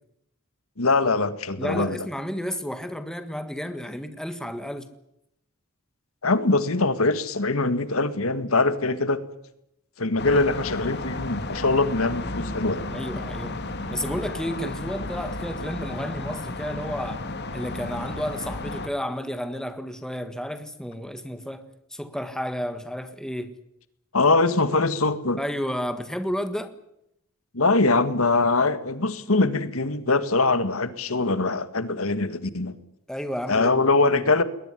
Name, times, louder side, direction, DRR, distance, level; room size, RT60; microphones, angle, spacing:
voice 1, 0.8-2.0 6.2-9.2 10.0-12.9 24.1-25.4 27.5-32.7 33.5-34.4, left 3 dB, 75° left, 1.8 m, -22 dB
voice 2, 1.6-4.9 12.9-13.6 13.9-23.5 25.4-26.7 33.1-34.3, equal, 5° left, 1.6 m, -32 dB
sound 1, 10.2-18.9, left 2 dB, 50° left, 2.4 m, -33 dB
21.5 x 18.0 x 9.8 m
head